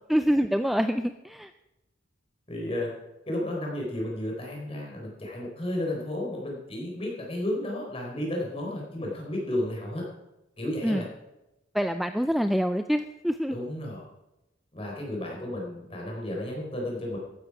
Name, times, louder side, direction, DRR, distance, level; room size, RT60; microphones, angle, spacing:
voice 1, 0.1-1.5 10.8-11.1 11.7-13.6, equal, ahead, 9 dB, 0.3 m, -26 dB
voice 2, 2.5-2.9 3.3-10.0 10.6-11.1 13.5-14.1 14.7-17.2, left 1 dB, 30° left, -1 dB, 4.2 m, -32 dB
14.0 x 11.0 x 4.9 m, 0.94 s
head